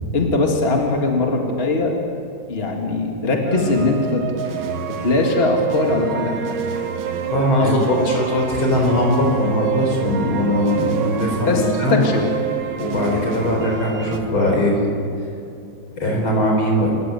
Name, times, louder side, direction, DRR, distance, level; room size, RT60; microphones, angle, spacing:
voice 1, 0.1-2.0 2.5-4.2 4.9-6.6 7.6-7.8 11.5-12.2, left 3 dB, 30° left, 1 dB, 2.4 m, -20 dB
sound 1, 3.5-14.2, right 8 dB, 80° right, 2.1 m, -27 dB
voice 2, 7.3-12.0 12.8-14.8 16.0-16.9, left 1 dB, 85° left, 0 dB, 5.6 m, -20 dB
28.0 x 14.5 x 7.8 m, 2.6 s
omnidirectional pair, 2.2 m